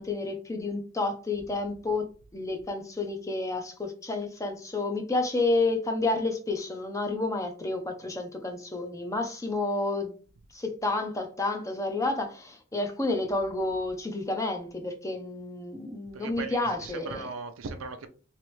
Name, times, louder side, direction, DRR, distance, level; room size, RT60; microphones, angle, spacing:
voice 1, 0.0-2.1 2.3-10.1 10.5-17.2, left 2 dB, 15° left, 0.6 m, -30 dB
voice 2, 16.1-18.1, right 4 dB, 85° right, 0.5 m, -38 dB
3.3 x 3.0 x 3.1 m
head